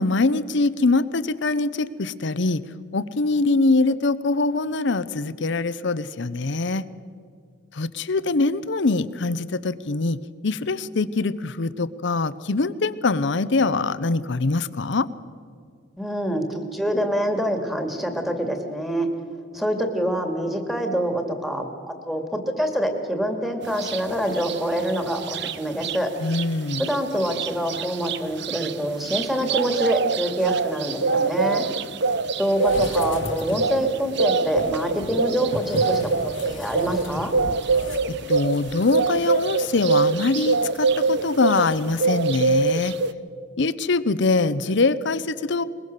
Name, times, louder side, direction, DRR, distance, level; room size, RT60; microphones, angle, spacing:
voice 1, 0.0-2.6 2.9-6.8 7.7-15.1 26.2-26.9 38.1-42.9 43.6-45.6, left 3 dB, 65° left, 15 dB, 0.8 m, -23 dB
voice 2, 16.0-19.1 19.5-26.1 26.8-31.7 32.4-37.3, equal, ahead, 4 dB, 2.2 m, -26 dB
sound 1, 23.8-24.0 24.4-26.0 26.3-26.4 26.7-41.7 42.0-43.1, right 4 dB, 60° right, 0.7 m, -24 dB
sound 2, 32.5-33.8 34.5-39.0 39.3-39.4, left 1 dB, 80° left, 1.8 m, -36 dB
22.5 x 21.0 x 6.7 m, 2.2 s
head